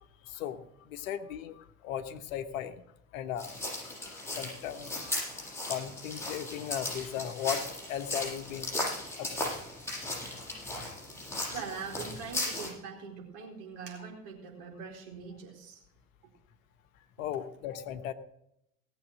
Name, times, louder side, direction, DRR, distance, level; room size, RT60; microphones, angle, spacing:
voice 1, 0.2-2.8 3.1-3.5 3.8-8.7 9.2-9.5 11.5-11.6 13.4-13.5 17.2-18.1, left 9 dB, 65° left, 9 dB, 1.3 m, -37 dB
sound 1, 3.4-12.7, left 1 dB, 5° left, 7.0 m, -37 dB
voice 2, 11.5-15.8, right 5 dB, 60° right, 1 dB, 4.4 m, -42 dB
17.5 x 7.6 x 6.2 m, 0.78 s
figure-of-eight pair, 60°, 43 cm